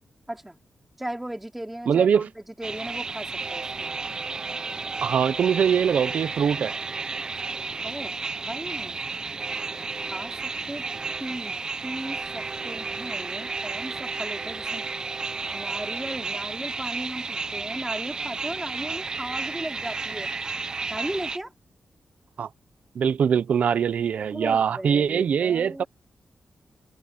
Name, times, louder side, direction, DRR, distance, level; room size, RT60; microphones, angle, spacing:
voice 1, 0.3-0.6 1.0-3.9 7.8-8.2 8.5-9.1 10.1-10.9 11.2-11.6 11.8-14.8 15.5-20.3 20.9-21.5 24.3-25.9, right 1 dB, 5° right, 3.8 m, -36 dB
voice 2, 1.9-2.3 5.0-6.7 22.4-22.5 22.9-25.8, right 7 dB, 60° right, 0.9 m, -22 dB
sound 1, 2.6-21.4, right 4 dB, 30° right, 0.8 m, -32 dB
wide cardioid pair, 175°, 3 cm